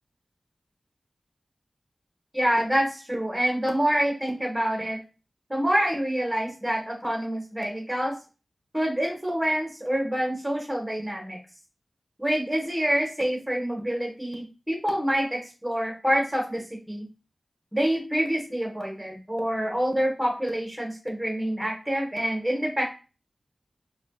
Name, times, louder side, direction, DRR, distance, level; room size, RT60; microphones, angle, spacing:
voice 1, 2.3-5.0 5.5-8.1 8.7-11.4 12.2-17.1 17.7-22.8, equal, 10° right, 1 dB, 1.2 m, -27 dB
4.2 x 2.3 x 2.3 m, 0.33 s
wide cardioid pair, 65°, 0 cm